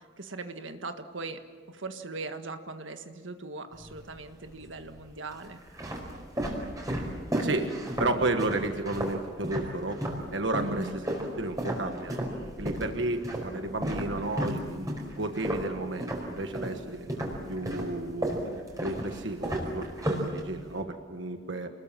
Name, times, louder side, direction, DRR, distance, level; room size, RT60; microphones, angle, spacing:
voice 1, 0.0-1.4 1.7-5.6 10.6-11.0, right 3 dB, 90° right, 7 dB, 1.6 m, -39 dB
sound 1, 3.7-4.4 5.1-10.3 10.5-16.8 17.1-20.8, right 1 dB, 20° right, 4.8 m, -33 dB
voice 2, 7.4-10.0 10.3-12.3 12.6-17.1 17.5-18.3 18.8-21.7, right 2 dB, 70° right, 6 dB, 1.4 m, -32 dB
28.5 x 21.0 x 7.5 m, 1.6 s
head